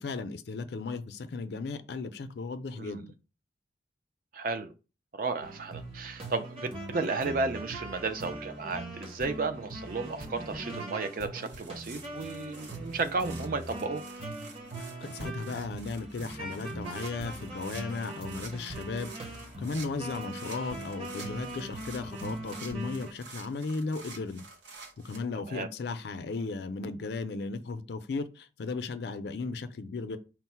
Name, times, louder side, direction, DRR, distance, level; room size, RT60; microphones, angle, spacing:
voice 1, 0.0-3.1 15.0-19.1 19.6-24.5 24.8-30.2, left 3 dB, 60° left, 0.4 m, -36 dB
voice 2, 2.8-3.1 4.3-4.7 5.1-14.0 25.5-25.7, right 3 dB, 50° right, 0.4 m, -33 dB
sound 1, 5.4-23.1, right 1 dB, 30° right, 0.9 m, -41 dB
sound 2, 11.4-25.2, right 4 dB, 75° right, 0.7 m, -50 dB
4.5 x 2.0 x 4.3 m
head